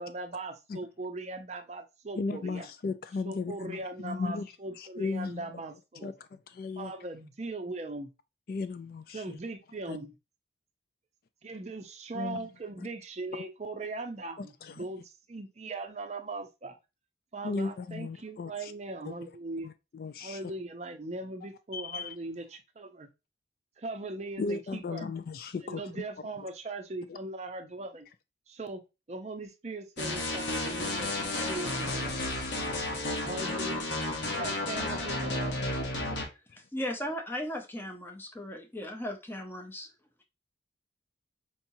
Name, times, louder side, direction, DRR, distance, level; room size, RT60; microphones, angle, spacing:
voice 1, 0.0-2.7 3.2-6.1 6.8-8.1 9.1-10.1 11.4-16.8 17.3-19.7 20.2-23.1 23.8-25.1 25.6-28.1 28.5-28.8 29.1-32.2 33.2-33.8 34.2-35.5, right 2 dB, 35° right, 0.5 m, -39 dB
voice 2, 2.2-5.4 6.0-6.9 8.5-9.4 9.9-10.0 12.1-12.5 12.8-12.9 14.4-14.8 17.4-18.7 19.0-19.3 19.6-20.5 21.7-22.1 24.4-26.0 27.1-27.2, left 4 dB, 50° left, 0.3 m, -36 dB
sound 1, 30.0-36.3, left 2 dB, 70° left, 1.0 m, -32 dB
voice 3, 36.7-39.9, equal, 10° left, 0.6 m, -36 dB
4.6 x 2.8 x 2.6 m
head